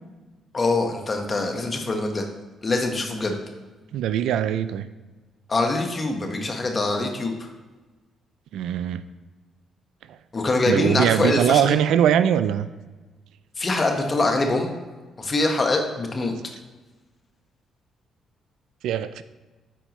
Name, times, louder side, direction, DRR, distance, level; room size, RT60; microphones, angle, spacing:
voice 1, 0.5-2.3 2.6-3.4 5.5-7.5 10.3-11.8 13.6-14.7 15.2-16.3, left 2 dB, 35° left, 3 dB, 1.2 m, -24 dB
voice 2, 3.9-4.9 8.5-9.0 10.7-12.7 18.8-19.2, right 10 dB, 80° right, 13 dB, 0.3 m, -21 dB
9.1 x 4.4 x 3.1 m, 1.3 s
supercardioid pair, 65°, 0 cm